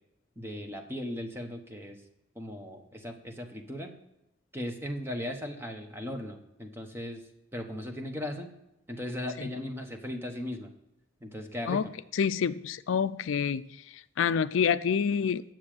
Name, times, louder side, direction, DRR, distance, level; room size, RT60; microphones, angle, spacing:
voice 1, 0.4-2.0 2.4-4.0 4.5-7.2 7.5-8.5 8.9-10.7 11.2-11.8, left 1 dB, 10° right, 4 dB, 1.0 m, -37 dB
voice 2, 12.1-13.6 14.2-15.4, left 7 dB, 75° left, 14 dB, 0.4 m, -27 dB
9.6 x 7.5 x 5.0 m, 0.90 s
head